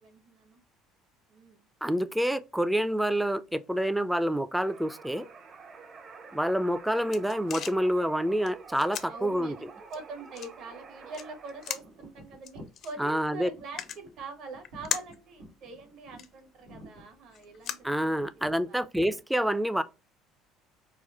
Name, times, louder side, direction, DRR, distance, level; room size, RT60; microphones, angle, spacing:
voice 1, 0.0-0.6 1.3-1.7 7.4-7.7 9.0-18.9, right 3 dB, 60° right, 1.2 m, -44 dB
voice 2, 1.8-5.3 6.3-9.6 13.0-13.5 17.8-19.8, equal, 5° right, 0.4 m, -27 dB
sound 1, 4.6-11.7, right 5 dB, 45° right, 0.8 m, -48 dB
sound 2, 6.5-18.6, left 9 dB, 55° left, 0.5 m, -42 dB
sound 3, 11.7-18.7, right 1 dB, 90° right, 1.7 m, -52 dB
4.7 x 2.0 x 2.9 m
supercardioid pair, 100°, 0 cm